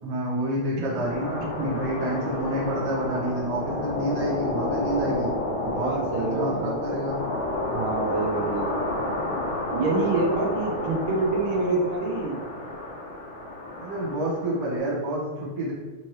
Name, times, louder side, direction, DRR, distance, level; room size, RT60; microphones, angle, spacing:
voice 1, 0.0-5.3 5.6-7.2 13.8-15.7, right 1 dB, 30° right, -6 dB, 0.6 m, -29 dB
sound 1, 1.0-14.8, left 1 dB, 75° left, 1.7 m, -30 dB
voice 2, 5.8-6.8 7.7-8.7 9.7-12.4, right 3 dB, 80° right, 1 dB, 1.5 m, -26 dB
4.5 x 2.9 x 3.1 m, 1.3 s
omnidirectional pair, 2.3 m